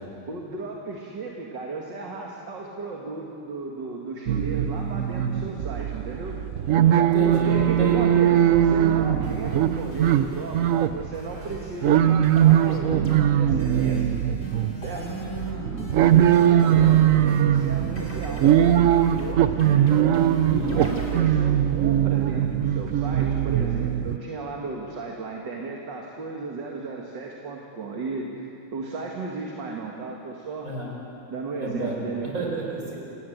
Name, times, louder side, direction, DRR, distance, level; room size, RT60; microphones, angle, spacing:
voice 1, 0.3-6.4 7.3-14.2 14.8-15.1 15.9-19.9 20.5-30.7 31.3-32.5, right 3 dB, 60° right, 0 dB, 2.5 m, -35 dB
sound 1, 4.3-24.2, right 10 dB, 75° right, 0.7 m, -21 dB
voice 2, 7.0-8.0 9.0-9.2 14.9-15.9 20.4-20.8 30.6-30.9 31.5-33.0, right 2 dB, 40° right, -1 dB, 5.3 m, -31 dB
sound 2, 9.2-10.9 11.1-12.0 12.2-13.2 13.6-21.2, equal, 30° left, 3.1 m, -43 dB
27.5 x 19.0 x 8.0 m, 2.8 s
omnidirectional pair, 2.3 m